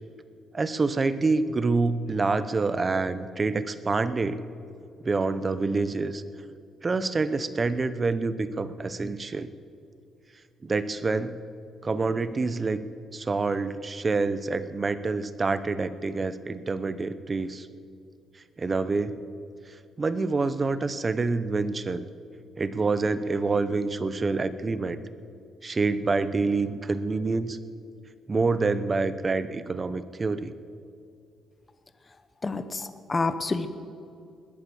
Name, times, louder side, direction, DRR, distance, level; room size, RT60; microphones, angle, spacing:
voice 1, 0.5-4.4 5.0-6.2 6.8-9.5 10.6-11.3 11.8-12.8 13.1-17.7 18.6-19.2 20.0-22.1 22.6-25.0 25.6-27.6 28.3-30.5, right 3 dB, 30° right, 14 dB, 0.8 m, -27 dB
voice 2, 32.4-33.7, left 3 dB, 25° left, 10 dB, 0.9 m, -28 dB
20.5 x 8.3 x 7.1 m, 2.5 s
cardioid pair, 90°, 0 cm